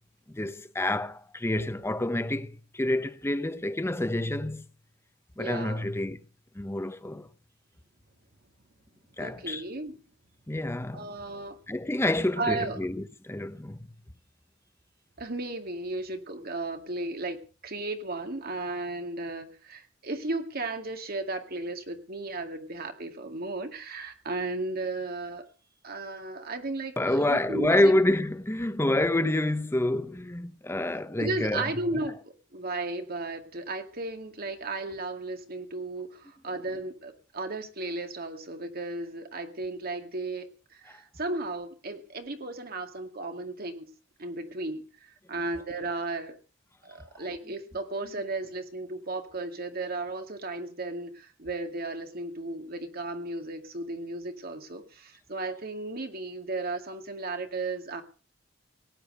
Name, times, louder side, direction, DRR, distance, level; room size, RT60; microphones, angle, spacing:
voice 1, 0.3-4.6 5.4-6.2 6.5-7.3 9.2-9.6 10.5-11.1 11.7-13.9 27.0-32.1 40.9-41.0, left 1 dB, 15° left, 0.8 m, -28 dB
voice 2, 5.4-5.8 9.2-10.0 10.9-11.6 12.4-12.8 15.2-25.5 25.8-27.9 31.2-32.2 32.5-43.9 44.2-46.4 46.8-58.0, right 2 dB, 50° right, 2.1 m, -35 dB
18.0 x 8.7 x 6.6 m
head